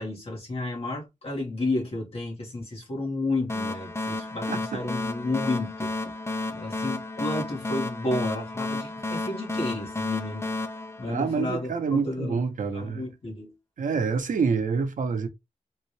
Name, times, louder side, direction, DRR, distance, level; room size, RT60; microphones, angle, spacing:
voice 1, 0.0-6.1 6.5-10.5 11.0-12.4 12.7-13.5, left 2 dB, 50° left, 1.8 m, -31 dB
sound 1, 3.5-11.8, left 2 dB, 20° left, 0.5 m, -32 dB
voice 2, 11.1-13.0 13.8-15.3, right 5 dB, 85° right, 0.7 m, -27 dB
3.7 x 2.7 x 3.1 m
wide cardioid pair, 155°, 13 cm